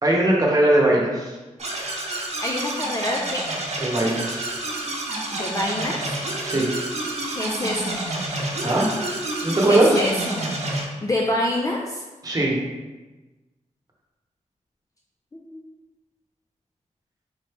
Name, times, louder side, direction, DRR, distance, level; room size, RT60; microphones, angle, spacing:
voice 1, 0.0-1.4 3.8-4.5 6.4-6.7 8.6-8.9 9.4-10.0 12.2-12.6, right 1 dB, 30° right, -3 dB, 1.1 m, -20 dB
sound 1, 1.6-10.9, right 2 dB, 55° right, 0.8 m, -29 dB
voice 2, 2.4-3.4 5.3-6.0 7.3-8.0 9.6-10.4 11.0-12.0 15.3-15.6, left 1 dB, 25° left, -2 dB, 0.5 m, -26 dB
3.9 x 3.1 x 3.2 m, 1.2 s
cardioid pair, 65°, 13 cm